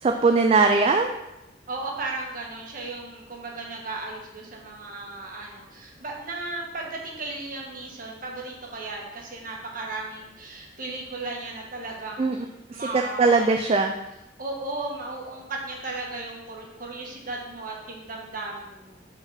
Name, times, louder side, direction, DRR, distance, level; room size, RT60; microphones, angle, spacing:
voice 1, 0.0-1.1 12.2-12.4 12.7-12.8 13.2-13.9, right 4 dB, 30° right, 4 dB, 0.3 m, -20 dB
voice 2, 1.7-12.5 12.7-13.4 14.4-19.1, right 2 dB, 45° right, -1 dB, 1.3 m, -35 dB
5.3 x 4.0 x 5.6 m, 0.93 s
head